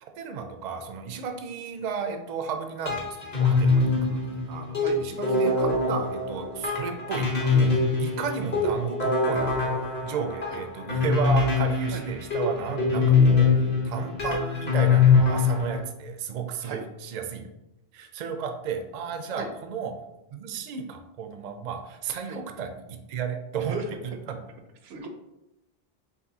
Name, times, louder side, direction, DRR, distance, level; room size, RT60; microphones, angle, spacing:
voice 1, 0.0-17.4 17.9-19.9 20.3-23.8 24.0-24.4, right 6 dB, 55° right, 5 dB, 0.5 m, -33 dB
sound 1, 2.9-15.8, left 4 dB, 45° left, 1.2 m, -23 dB
voice 2, 23.7-24.0 24.8-25.1, right 3 dB, 85° right, 6 dB, 0.9 m, -36 dB
4.9 x 3.3 x 2.7 m, 0.91 s
omnidirectional pair, 1.0 m